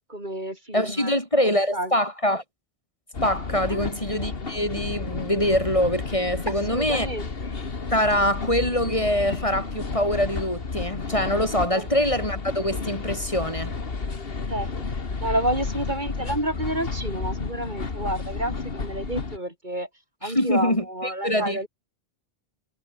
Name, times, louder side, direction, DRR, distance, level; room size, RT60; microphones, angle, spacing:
voice 1, 0.1-1.1 1.4-2.0 3.7-3.9 6.5-7.3 11.7-11.9 14.5-14.7 15.2-19.9 20.2-21.7, right 1 dB, 50° right, 6.2 m, -30 dB
voice 2, 0.7-2.4 3.2-7.1 7.9-13.7 20.2-21.6, equal, 30° left, 6.2 m, -24 dB
sound 1, 3.1-19.4, left 4 dB, 65° left, 2.1 m, -32 dB
omnidirectional pair, 1.0 m